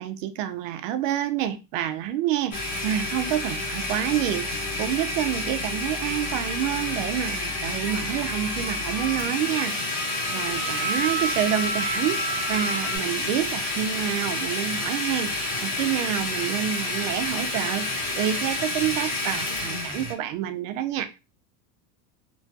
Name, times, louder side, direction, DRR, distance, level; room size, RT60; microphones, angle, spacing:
voice 1, 0.0-4.5 4.8-21.1, right 11 dB, 55° right, 0.5 m, -28 dB
Domestic sounds home sounds, 2.5-20.1, left 2 dB, 35° left, 1.0 m, -29 dB
sound 1, 5.4-13.0, right 2 dB, 55° left, 1.4 m, -34 dB
3.0 x 2.3 x 2.6 m
supercardioid pair, 150°, 46 cm